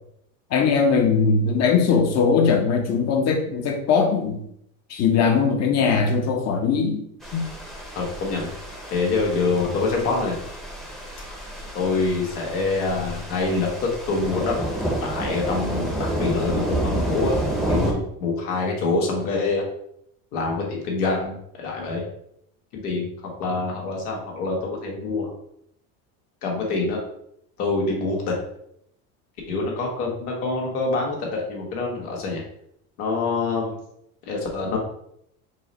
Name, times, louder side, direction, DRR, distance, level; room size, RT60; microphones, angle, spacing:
voice 1, 0.5-4.5 4.9-7.0 7.3-7.4 34.7-34.8, left 5 dB, 35° left, 4 dB, 0.7 m, -20 dB
sound 1, 7.2-17.9, right 1 dB, ahead, 0.7 m, -29 dB
voice 2, 7.9-8.5 8.9-10.4 11.7-14.5 15.0-17.4 17.7-19.7 20.3-22.0 22.7-25.3 26.4-27.0 27.6-28.3 29.5-32.4 33.0-33.8 34.3-34.8, left 3 dB, 90° left, -1 dB, 1.4 m, -25 dB
4.6 x 2.1 x 4.0 m, 0.74 s
supercardioid pair, 125°, 43 cm